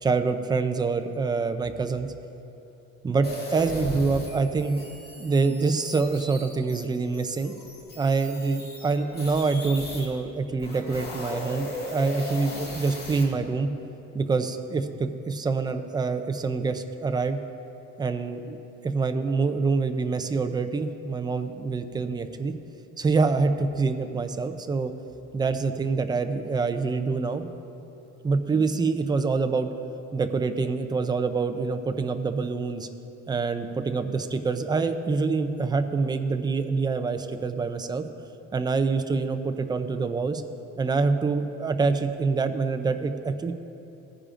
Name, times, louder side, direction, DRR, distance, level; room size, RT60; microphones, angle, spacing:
voice 1, 0.0-2.1 3.0-4.8 5.2-7.5 8.0-13.7 14.1-17.4 18.0-18.6 18.8-22.5 23.0-24.9 25.3-27.5 28.2-29.7 30.1-32.9 33.3-38.1 38.5-40.4 40.8-43.5, right 4 dB, 15° right, 8 dB, 0.4 m, -26 dB
sound 1, 3.2-10.1 10.5-13.2, left 1 dB, 35° left, 2.0 m, -38 dB
18.5 x 10.0 x 2.5 m, 2.9 s
cardioid pair, 180°, 29 cm